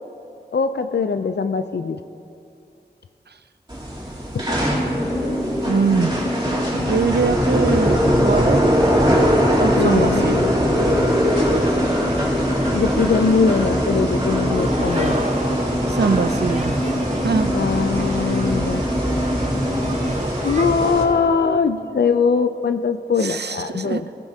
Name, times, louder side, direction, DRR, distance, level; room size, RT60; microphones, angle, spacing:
voice 1, 0.5-2.0 9.7-10.5 12.7-15.1 17.5-18.8 20.4-24.1, left 5 dB, 75° left, 9 dB, 0.4 m, -21 dB
sound 1, 3.7-21.0, equal, 25° right, 3.1 m, -21 dB
sound 2, 4.5-20.2, left 1 dB, 35° left, 2.0 m, -27 dB
voice 2, 5.7-6.2 6.7-8.7 9.6-10.4 15.9-16.8 17.2-17.5 23.2-24.0, right 5 dB, 75° right, 11 dB, 0.5 m, -22 dB
sound 3, 11.3-20.6, right 2 dB, 40° right, 1.0 m, -33 dB
17.5 x 14.5 x 2.8 m, 2.6 s
wide cardioid pair, 40°, 17 cm